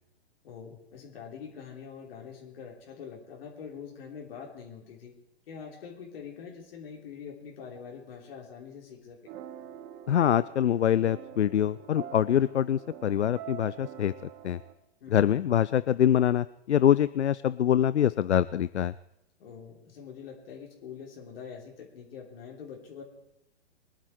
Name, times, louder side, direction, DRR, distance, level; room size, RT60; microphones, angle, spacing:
voice 1, 0.4-5.1 5.5-9.2 15.0-15.2 19.4-23.0, left 6 dB, 60° left, -1 dB, 3.3 m, -44 dB
sound 1, 9.3-14.7, right 10 dB, 30° right, 1.5 m, -45 dB
voice 2, 10.1-14.6 15.1-18.9, left 10 dB, 85° left, 17 dB, 0.5 m, -25 dB
23.5 x 9.7 x 4.7 m, 0.85 s
hypercardioid pair, 120°, 33 cm